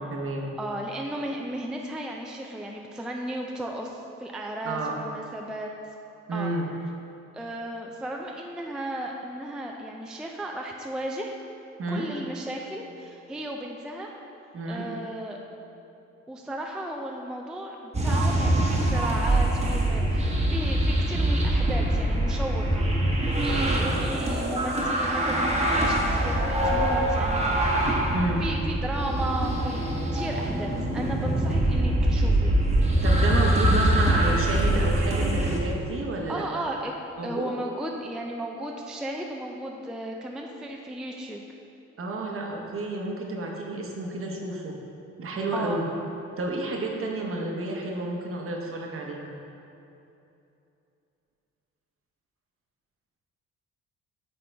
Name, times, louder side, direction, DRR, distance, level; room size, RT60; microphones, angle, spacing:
voice 1, 0.0-0.5 4.6-5.0 6.3-6.6 11.8-12.1 14.5-14.9 23.5-24.0 28.1-28.4 33.0-36.7 37.2-37.5 42.0-44.7 45.2-45.9 46.4-49.3, right 2 dB, 45° right, 0 dB, 1.0 m, -31 dB
voice 2, 0.6-5.7 6.3-6.5 7.3-11.4 11.9-14.1 14.7-15.4 16.3-22.8 23.4-27.8 28.4-29.9 30.1-32.5 36.3-36.9 37.2-41.4 45.5-45.8, right 1 dB, 5° right, 1 dB, 0.4 m, -34 dB
sound 1, 17.9-35.6, right 1 dB, 20° right, 1.0 m, -24 dB
8.8 x 3.7 x 3.4 m, 2.8 s
cardioid pair, 90°, 30 cm